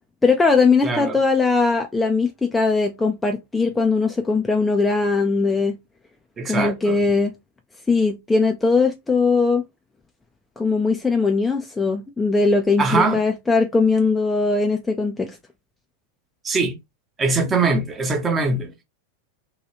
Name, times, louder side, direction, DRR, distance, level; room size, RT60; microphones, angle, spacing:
voice 1, 0.2-5.8 6.4-7.3 7.9-9.6 10.6-15.4, left 4 dB, 10° left, 0.4 m, -20 dB
voice 2, 0.8-1.2 6.4-7.0 12.8-13.2 16.4-16.8 17.2-18.7, right 3 dB, 20° right, 0.7 m, -22 dB
2.9 x 2.3 x 2.9 m
figure-of-eight pair, 90°, 0 cm